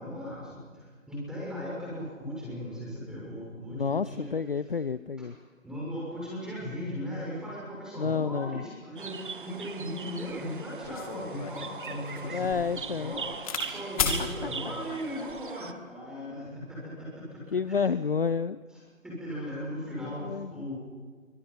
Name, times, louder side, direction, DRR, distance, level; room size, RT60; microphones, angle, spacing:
voice 1, 0.0-4.4 5.2-5.3 5.6-18.0 18.7-18.8 19.0-20.7, equal, ahead, -5 dB, 6.7 m, -38 dB
voice 2, 3.7-5.3 8.0-8.6 12.3-13.2 14.4-14.5 14.9-15.7 17.5-18.6 20.0-20.7, left 5 dB, 45° left, 15 dB, 0.6 m, -30 dB
sound 1, 9.0-15.7, right 5 dB, 40° right, 1.1 m, -40 dB
sound 2, 10.3-10.4 10.8-13.7 14.0-14.2 15.1-15.4, left 7 dB, 25° left, 2.6 m, -34 dB
29.5 x 25.0 x 5.8 m, 1.5 s
figure-of-eight pair, 150°, 40 cm